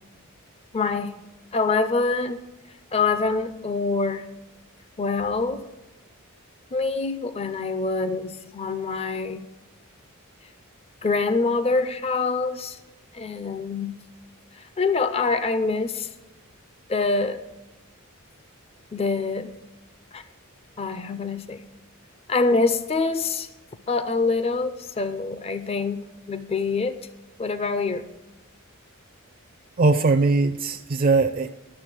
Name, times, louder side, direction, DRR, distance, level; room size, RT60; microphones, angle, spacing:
voice 1, 0.7-1.1 1.5-2.4 2.9-4.3 5.0-5.6 6.7-9.4 11.0-12.8 13.1-13.9 14.6-16.1 16.9-17.4 18.9-19.5 20.1-20.2 20.8-21.6 22.3-23.5 23.9-27.0 27.4-28.0, left 3 dB, 30° left, 11 dB, 0.5 m, -25 dB
voice 2, 29.8-31.6, right 3 dB, 40° right, 4 dB, 0.4 m, -20 dB
11.5 x 7.1 x 6.1 m, 1.0 s
head